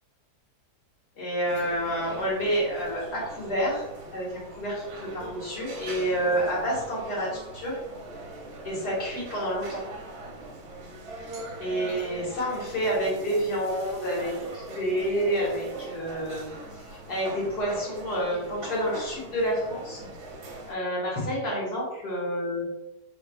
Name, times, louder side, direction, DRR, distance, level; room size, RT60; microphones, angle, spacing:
voice 1, 1.2-3.8 4.1-7.8 8.6-9.8 11.6-20.1 20.7-22.7, equal, 75° left, -6 dB, 2.2 m, -29 dB
sound 1, 1.5-20.7, right 2 dB, 70° right, 1.2 m, -41 dB
4.6 x 3.8 x 2.3 m, 0.92 s
omnidirectional pair, 1.7 m